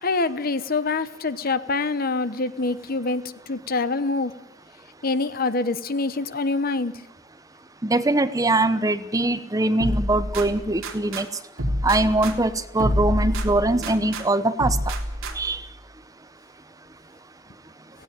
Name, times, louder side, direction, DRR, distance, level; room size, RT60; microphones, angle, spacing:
voice 1, 0.0-4.4 5.0-6.9, left 3 dB, 45° left, 13 dB, 1.0 m, -25 dB
voice 2, 7.8-11.3 11.8-14.8 15.4-15.6, right 2 dB, 15° right, 12 dB, 0.9 m, -22 dB
sound 1, 9.8-11.2 11.6-14.2 14.6-15.6, equal, 80° right, 3.4 m, -27 dB
17.5 x 16.5 x 9.1 m, 0.95 s
head